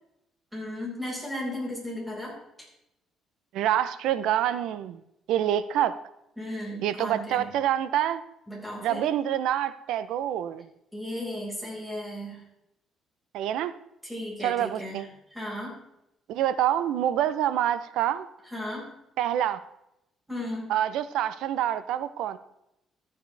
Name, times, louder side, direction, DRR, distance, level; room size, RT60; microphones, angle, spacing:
voice 1, 0.5-2.7 6.4-7.5 8.5-9.0 10.9-12.4 14.0-15.0 15.3-15.7 18.5-18.9 20.3-20.7, left 1 dB, ahead, -4 dB, 4.9 m, -35 dB
voice 2, 3.5-5.0 5.3-6.0 6.8-8.2 8.8-10.7 13.3-13.7 14.4-15.1 16.3-18.3 19.2-19.6 20.7-22.4, right 11 dB, 85° right, 14 dB, 0.6 m, -26 dB
14.5 x 9.5 x 3.3 m, 0.84 s
cardioid pair, 120°, 0 cm